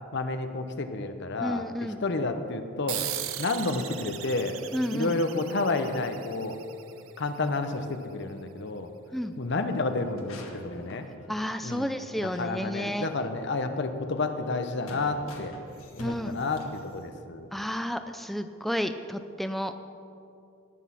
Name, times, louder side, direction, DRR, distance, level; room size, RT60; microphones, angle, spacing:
voice 1, 0.1-3.1 3.4-4.6 4.9-6.6 7.2-8.9 9.4-11.1 11.6-11.9 12.2-15.5 16.0-17.5, left 3 dB, 55° left, 8 dB, 0.8 m, -30 dB
voice 2, 1.4-2.0 4.7-5.2 9.1-9.3 11.3-13.1 16.0-16.4 17.5-19.7, equal, ahead, 8 dB, 0.3 m, -31 dB
sound 1, 2.9-7.8, right 12 dB, 75° right, 0.7 m, -38 dB
sound 2, 10.0-12.0 12.3-12.4 12.9-13.0 14.1-17.1, left 2 dB, 75° left, 1.6 m, -47 dB
18.5 x 6.2 x 5.8 m, 2.6 s
head